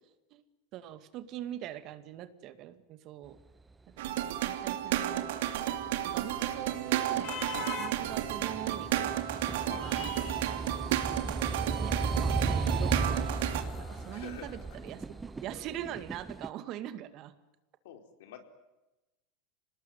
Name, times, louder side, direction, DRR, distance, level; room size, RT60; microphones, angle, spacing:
voice 1, 0.7-3.4 4.0-7.3 7.6-9.1 9.8-10.1 11.8-17.3, right 12 dB, 45° right, 11 dB, 2.1 m, -43 dB
sound 1, 4.0-13.6, right 12 dB, 75° right, 2.6 m, -32 dB
sound 2, 5.1-16.5, right 3 dB, 15° right, 0.8 m, -36 dB
sound 3, 5.2-15.4, left 7 dB, 50° left, 5.2 m, -47 dB
voice 2, 14.1-14.6 17.8-18.4, left 9 dB, 75° left, 6 dB, 4.4 m, -47 dB
26.0 x 19.5 x 9.5 m, 1.0 s
supercardioid pair, 120°, 0 cm